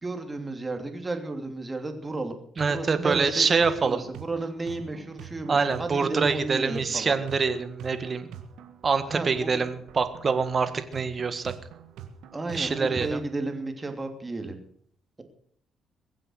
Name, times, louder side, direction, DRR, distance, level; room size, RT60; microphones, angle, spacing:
voice 1, 0.0-3.5 3.8-7.1 9.1-9.5 12.3-14.6, right 2 dB, 25° right, 5 dB, 2.8 m, -33 dB
voice 2, 2.6-4.0 5.5-8.3 8.8-11.5 12.5-13.2, right 5 dB, 40° right, 10 dB, 1.6 m, -25 dB
sound 1, 2.6-13.2, right 8 dB, 85° right, 1.7 m, -45 dB
22.0 x 7.7 x 6.5 m, 0.64 s
cardioid pair, 90°, 0 cm